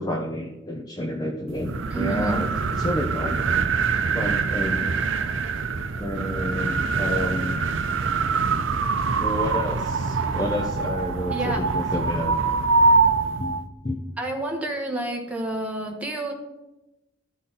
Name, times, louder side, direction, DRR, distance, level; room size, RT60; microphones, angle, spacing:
voice 1, 0.0-2.5 2.8-3.6 4.1-5.0 6.0-7.6 9.2-12.4 13.4-13.6 13.8-14.0, left 1 dB, 20° left, 2 dB, 0.5 m, -30 dB
sound 1, 1.5-13.6, right 4 dB, 70° right, 0.6 m, -24 dB
voice 2, 1.9-2.4 11.3-11.7 14.2-16.3, right 2 dB, 5° right, 0 dB, 1.1 m, -29 dB
12.5 x 4.2 x 3.9 m, 0.97 s
head